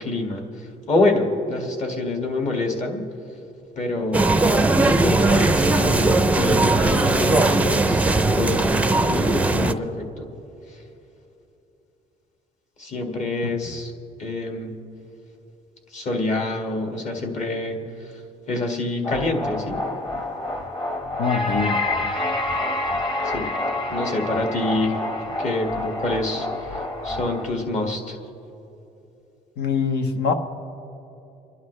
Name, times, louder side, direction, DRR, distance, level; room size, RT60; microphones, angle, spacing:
voice 1, 0.0-3.1 3.8-4.4 5.0-8.0 8.3-10.3 10.7-10.8 12.8-13.9 14.2-14.8 15.9-18.2 18.5-19.8 23.2-23.5 23.9-25.0 25.4-28.2, left 2 dB, 45° left, 2 dB, 2.0 m, -26 dB
sound 1, 4.1-9.7, right 2 dB, 10° right, 0.5 m, -19 dB
sound 2, 19.0-27.4, left 2 dB, 30° left, 1.6 m, -27 dB
voice 2, 21.2-21.8 29.6-30.3, left 5 dB, 70° left, 7 dB, 1.1 m, -23 dB
29.5 x 11.0 x 3.3 m, 2.9 s
cardioid pair, 110°, 17 cm